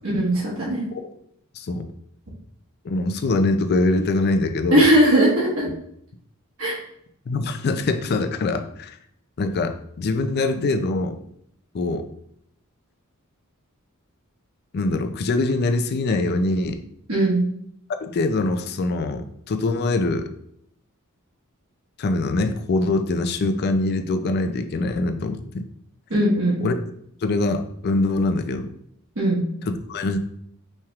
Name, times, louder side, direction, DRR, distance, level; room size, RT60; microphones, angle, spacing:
voice 1, 0.0-0.8 4.7-5.7 6.6-6.8 17.1-17.4 26.1-26.6 29.2-29.4, right 1 dB, 70° right, -6 dB, 1.4 m, -19 dB
voice 2, 2.8-4.8 7.3-9.0 9.4-11.2 11.7-12.0 14.7-16.8 18.0-20.3 22.0-25.7 26.6-26.7 27.2-28.7 29.6-30.2, left 2 dB, 50° left, 8 dB, 0.4 m, -23 dB
5.6 x 3.3 x 2.4 m, 0.71 s
head